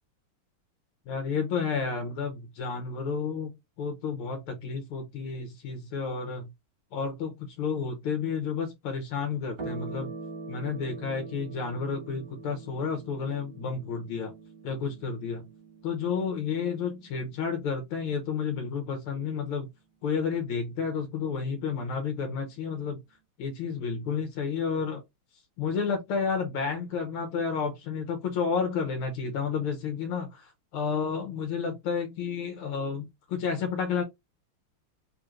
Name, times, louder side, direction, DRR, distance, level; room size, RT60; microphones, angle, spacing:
voice 1, 1.1-3.5 3.8-6.5 6.9-10.1 10.5-14.3 14.6-15.5 15.8-19.7 20.0-23.0 23.4-25.0 25.6-34.0, left 5 dB, 85° left, 1.8 m, -31 dB
sound 1, 9.6-18.4, right 3 dB, 40° right, 1.0 m, -44 dB
3.8 x 3.0 x 3.1 m
omnidirectional pair, 2.3 m